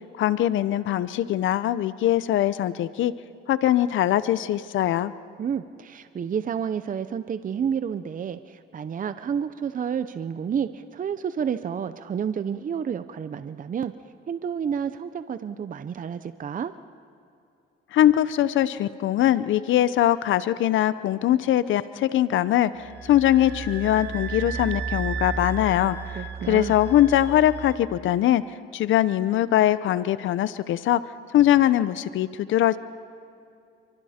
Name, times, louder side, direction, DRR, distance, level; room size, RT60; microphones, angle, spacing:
voice 1, 0.2-3.1 3.5-5.1 17.9-26.2 26.5-28.4 28.7-31.0 31.3-32.8, left 12 dB, 75° left, 15 dB, 0.7 m, -22 dB
voice 2, 5.4-13.9 14.3-16.7 26.2-26.7, right 7 dB, 45° right, 11 dB, 0.7 m, -30 dB
sound 1, 22.8-27.8, right 5 dB, 60° right, 2.2 m, -33 dB
29.5 x 24.0 x 4.3 m, 2.6 s
cardioid pair, 90°, 20 cm